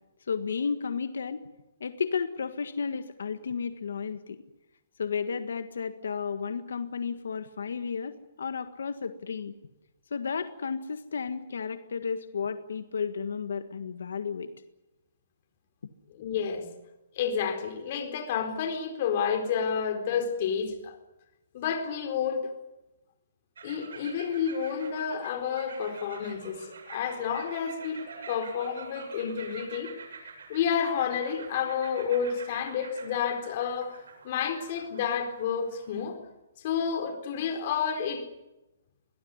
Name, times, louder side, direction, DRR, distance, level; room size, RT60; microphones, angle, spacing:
voice 1, 0.3-1.4 1.8-4.4 5.0-9.5 10.1-14.5, left 6 dB, 80° left, 9 dB, 1.7 m, -33 dB
voice 2, 16.1-16.7 17.1-21.0 21.5-22.5 23.6-29.9 30.5-36.2 36.6-38.2, left 7 dB, 35° left, 6 dB, 4.2 m, -30 dB
sound 1, 23.6-36.1, right 5 dB, 85° right, 7.7 m, -46 dB
23.0 x 18.5 x 9.7 m, 0.98 s
hypercardioid pair, 170°, 0 cm